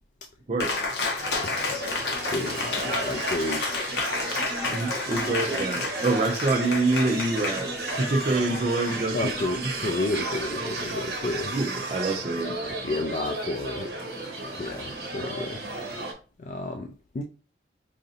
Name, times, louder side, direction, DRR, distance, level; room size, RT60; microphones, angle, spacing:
voice 1, 0.5-0.8 4.7-9.2 11.5-12.6, right 2 dB, 40° right, 0.5 m, -26 dB
Cheering, 0.6-9.5, left 3 dB, 70° left, 0.9 m, -31 dB
sound 1, 1.2-16.1, right 2 dB, 60° right, 1.0 m, -33 dB
voice 2, 1.4-1.9 2.3-3.9 5.1-5.5 9.1-11.6 12.6-13.9 14.6-15.6 16.4-17.2, left 2 dB, 40° left, 0.3 m, -32 dB
sound 2, 6.6-10.5 11.0-11.3 11.7-11.8, left 3 dB, 85° left, 1.2 m, -46 dB
4.9 x 2.6 x 2.7 m
head